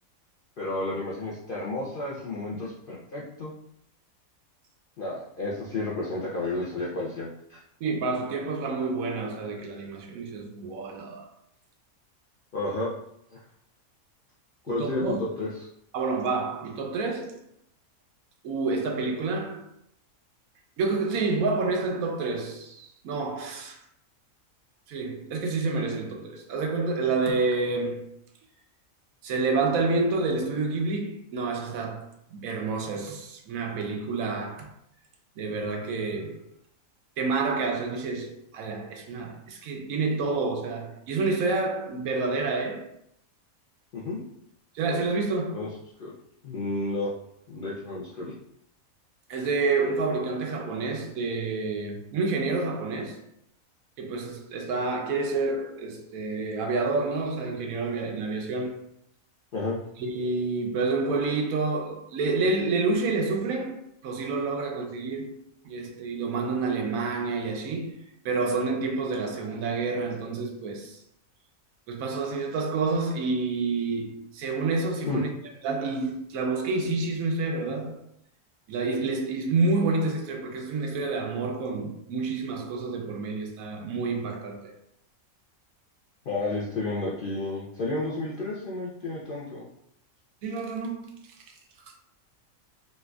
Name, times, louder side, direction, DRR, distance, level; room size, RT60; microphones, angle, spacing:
voice 1, 0.6-3.5 5.0-7.6 12.5-12.9 13.3-13.4 14.6-15.7 43.9-44.2 45.5-45.7 46.0-46.1 46.4-47.1 47.5-48.4 59.5-59.8 75.1-75.2 86.3-89.7, left 2 dB, 65° left, 0.5 m, -31 dB
voice 2, 7.8-11.3 14.7-15.2 15.9-17.4 18.4-19.6 20.8-23.8 24.9-28.1 29.2-34.7 35.4-36.4 37.2-42.9 44.7-45.7 49.3-53.2 54.0-58.8 60.0-68.0 68.2-71.0 71.9-75.3 75.6-78.0 78.7-84.7 90.4-91.1, right 3 dB, 80° right, 1.0 m, -28 dB
4.1 x 2.4 x 2.3 m
omnidirectional pair, 1.5 m